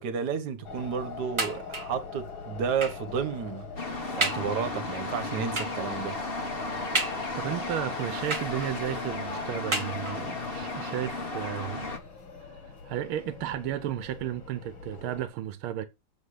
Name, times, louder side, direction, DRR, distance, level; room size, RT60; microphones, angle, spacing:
voice 1, 0.0-3.7 4.2-6.2, right 6 dB, 55° right, 1.7 m, -32 dB
sound 1, 0.6-15.3, left 5 dB, 75° left, 3.0 m, -43 dB
sound 2, 1.4-2.0 2.8-3.1 3.7-3.8 4.2-4.6 5.6-5.9 6.9-7.6 8.3-8.9 9.7-10.4 11.2-11.3 11.6-11.7, right 2 dB, 20° right, 1.0 m, -32 dB
sound 3, 3.8-12.0, left 2 dB, 30° left, 1.3 m, -35 dB
voice 2, 7.3-11.9 12.4-15.9, right 12 dB, 85° right, 1.6 m, -34 dB
8.0 x 7.3 x 4.9 m
omnidirectional pair, 2.3 m